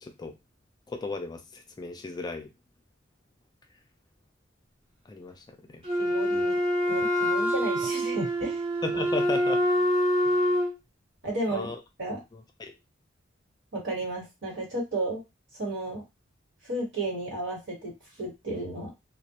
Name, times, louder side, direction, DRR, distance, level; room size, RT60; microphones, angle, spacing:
voice 1, 0.0-0.3 0.9-2.5 5.1-5.4 5.7-5.8 8.8-9.6 11.5-11.8 12.3-12.7, left 3 dB, 20° left, 5 dB, 0.3 m, -35 dB
Wind instrument woodwind instrument, 5.8-10.8, equal, 30° right, 0.7 m, -25 dB
voice 2, 6.0-6.6 6.9-8.6 8.9-9.0 11.2-11.7 12.0-12.2 13.7-15.2 15.6-16.0 16.6-17.9 18.2-18.9, right 2 dB, 75° right, -3 dB, 1.3 m, -33 dB
2.2 x 2.0 x 2.8 m, 0.23 s
head